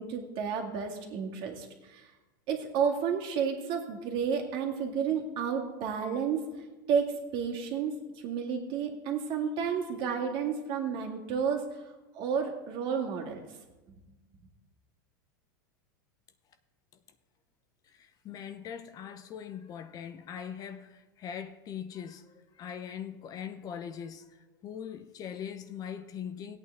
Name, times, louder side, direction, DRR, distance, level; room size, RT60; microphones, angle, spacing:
voice 1, 0.0-2.1 2.5-6.5 6.9-7.9 8.2-11.8 12.1-13.4, right 6 dB, 50° right, 1.9 m, -31 dB
voice 2, 17.8-26.6, left 8 dB, 35° left, 0.7 m, -41 dB
16.5 x 8.7 x 3.4 m
supercardioid pair, 120°, 11 cm